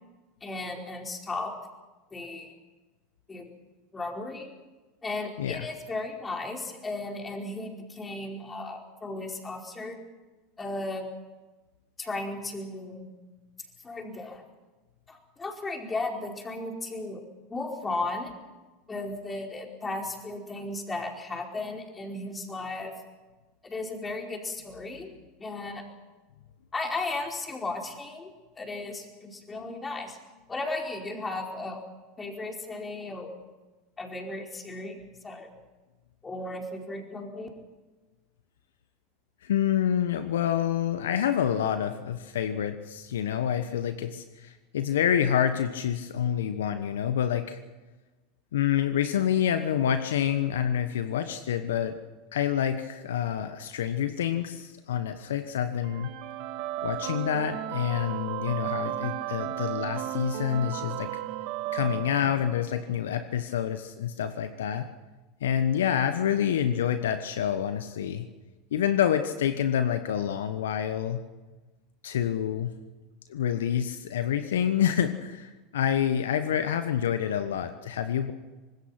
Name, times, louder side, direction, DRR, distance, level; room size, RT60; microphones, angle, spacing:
voice 1, 0.4-1.5 2.1-2.5 3.3-3.5 3.9-4.5 5.0-10.0 10.6-11.1 12.0-13.1 13.8-14.4 15.1-17.2 17.5-18.3 18.9-22.9 23.6-25.1 25.4-25.8 26.7-28.3 28.6-30.2 30.5-31.8 32.2-33.3 34.0-35.5 36.2-37.5, left 2 dB, 20° left, 1 dB, 4.8 m, -35 dB
voice 2, 39.4-47.6 48.5-52.0 52.3-56.1 56.8-61.1 61.7-64.9 65.4-68.3 68.7-71.2 72.0-72.7 73.3-78.3, left 9 dB, 75° left, 10 dB, 1.1 m, -27 dB
sound 1, 55.8-62.8, right 13 dB, 60° right, 2.1 m, -34 dB
25.0 x 20.5 x 6.0 m, 1.2 s
hypercardioid pair, 85°, 0 cm